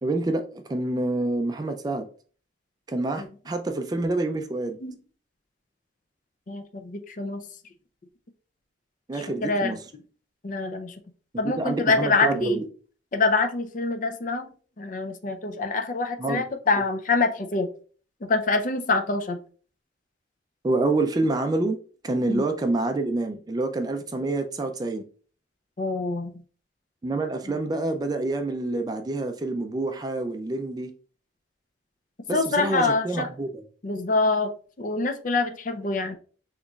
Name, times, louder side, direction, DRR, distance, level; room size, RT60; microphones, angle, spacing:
voice 1, 0.0-2.1 2.9-4.8 9.1-9.8 11.4-12.6 16.2-16.4 16.8-16.9 20.6-25.1 27.0-30.9 32.3-33.6, right 2 dB, 20° right, 0.3 m, -27 dB
voice 2, 6.5-7.4 9.4-9.8 10.4-10.9 11.4-12.6 13.1-14.5 14.8-17.7 18.3-19.4 22.3-22.4 25.8-26.4 32.3-33.3 33.8-34.5 34.8-36.2, left 3 dB, 45° left, 0.5 m, -25 dB
6.2 x 3.0 x 2.3 m
head